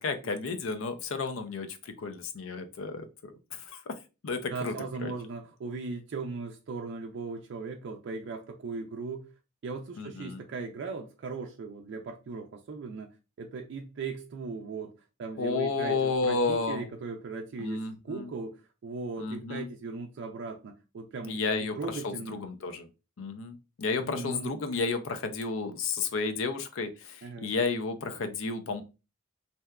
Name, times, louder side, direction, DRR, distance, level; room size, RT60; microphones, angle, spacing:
voice 1, 0.0-3.9 4.2-4.7 5.0-5.1 10.0-10.4 15.4-16.9 17.6-18.3 19.2-19.7 21.3-22.9 23.2-28.8, left 4 dB, 80° left, 0.5 m, -32 dB
voice 2, 4.5-9.3 9.6-13.1 13.4-14.9 15.2-22.4 24.0-24.6 27.2-27.5, right 4 dB, 60° right, 0.3 m, -38 dB
2.7 x 2.1 x 2.2 m
head